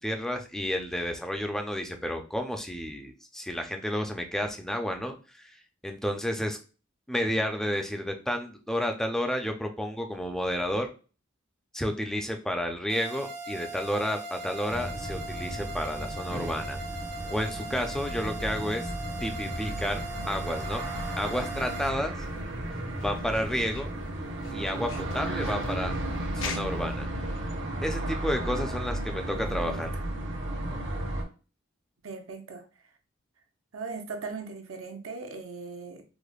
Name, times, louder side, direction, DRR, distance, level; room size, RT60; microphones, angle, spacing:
voice 1, 0.0-5.1 5.4-5.6 5.8-6.6 7.1-10.9 11.7-16.8 17.3-18.9 19.2-20.8 21.2-22.2 23.0-23.9 24.5-25.9 26.4-27.1 27.8-29.9, equal, 5° left, 0.4 m, -31 dB
sound 1, 12.9-21.9, right 2 dB, 45° right, 0.6 m, -39 dB
sound 2, 14.7-31.2, right 1 dB, 60° right, 1.1 m, -34 dB
sound 3, 22.0-26.9, left 5 dB, 75° left, 0.5 m, -43 dB
voice 2, 29.5-30.0 32.0-32.6 33.7-36.0, right 4 dB, 85° right, 0.7 m, -39 dB
4.9 x 2.1 x 2.3 m
head